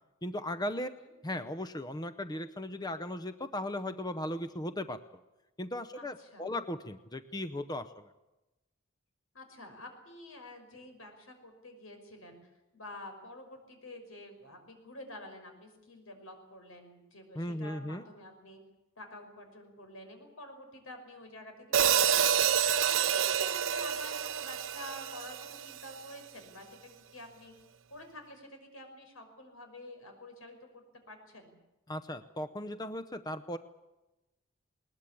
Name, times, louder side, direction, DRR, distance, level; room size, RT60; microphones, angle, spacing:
voice 1, 0.2-0.9 1.2-5.0 5.6-8.1 17.4-18.0 31.9-33.6, left 1 dB, 20° left, 11 dB, 0.7 m, -37 dB
voice 2, 0.8-1.1 5.9-6.5 9.3-18.6 19.0-22.3 22.6-27.5 27.9-31.6, left 1 dB, 90° left, 5 dB, 5.7 m, -49 dB
Hi-hat, 21.7-25.9, right 8 dB, 70° right, 0.8 m, -28 dB
20.5 x 20.0 x 8.5 m, 1.0 s
head